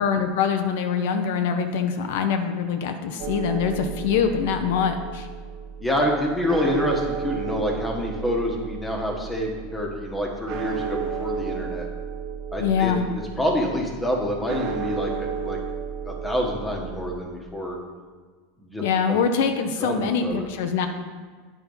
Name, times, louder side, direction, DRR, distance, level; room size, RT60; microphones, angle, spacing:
voice 1, 0.0-5.3 12.6-13.0 18.8-20.9, left 6 dB, 75° left, 6 dB, 0.7 m, -24 dB
sound 1, 3.2-17.2, right 6 dB, 50° right, 1.0 m, -33 dB
voice 2, 5.8-11.9 12.5-15.6 16.0-17.8 18.6-19.2 19.8-20.5, equal, 10° left, 0 dB, 1.3 m, -27 dB
9.3 x 4.2 x 5.5 m, 1.5 s
supercardioid pair, 140°, 0 cm